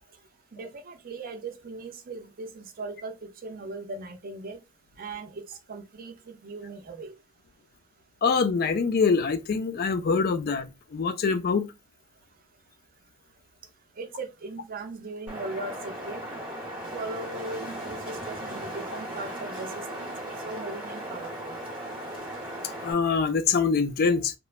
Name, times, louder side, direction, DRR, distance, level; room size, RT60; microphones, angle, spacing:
voice 1, 0.5-4.6 5.0-7.1 14.0-16.2 16.9-21.6, right 3 dB, 40° right, 0.5 m, -39 dB
voice 2, 8.2-11.7 22.8-24.3, left 5 dB, 45° left, 0.3 m, -24 dB
Wind, 15.3-22.9, right 1 dB, 5° right, 1.0 m, -37 dB
3.0 x 2.1 x 2.3 m
head